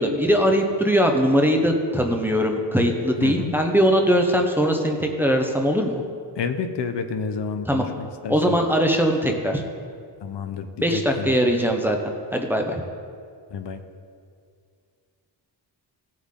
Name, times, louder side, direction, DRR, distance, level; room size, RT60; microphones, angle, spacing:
voice 1, 0.0-6.0 7.7-7.8 8.3-9.6 10.8-12.8, equal, 5° right, 2 dB, 0.8 m, -21 dB
voice 2, 3.2-3.5 6.4-8.6 10.2-11.4 13.5-13.8, left 5 dB, 70° left, 8 dB, 0.8 m, -30 dB
17.0 x 7.7 x 3.7 m, 2.3 s
wide cardioid pair, 150°, 44 cm